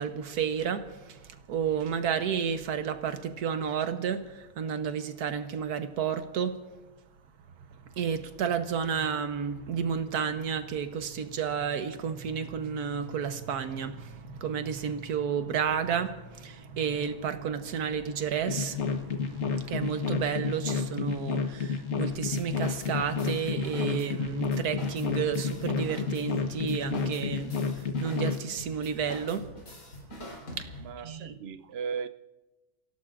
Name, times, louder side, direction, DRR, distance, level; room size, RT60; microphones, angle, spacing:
voice 1, 0.0-6.6 8.0-29.5 30.5-31.3, right 7 dB, 85° right, 1.5 m, -31 dB
sound 1, 18.5-28.4, left 5 dB, 50° left, 1.3 m, -30 dB
sound 2, 22.1-31.0, left 1 dB, 80° left, 4.5 m, -45 dB
voice 2, 30.8-32.1, right 6 dB, 55° right, 0.7 m, -36 dB
27.5 x 16.5 x 2.5 m
omnidirectional pair, 1.6 m